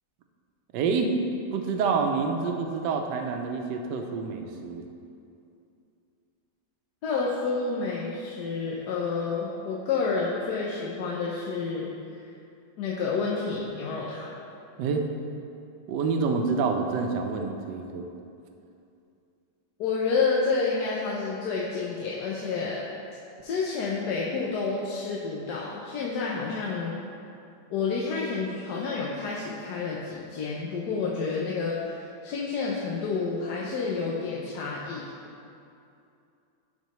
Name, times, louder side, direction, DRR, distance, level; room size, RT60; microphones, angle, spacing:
voice 1, 0.7-1.1 1.5-4.9 14.8-15.1 15.9-18.1, right 5 dB, 75° right, 4 dB, 1.2 m, -27 dB
voice 2, 7.0-12.2 12.8-14.3 19.8-22.9 23.4-27.0 27.7-35.1, left 4 dB, 70° left, -4 dB, 1.2 m, -29 dB
12.0 x 4.3 x 3.1 m, 2.6 s
omnidirectional pair, 1.9 m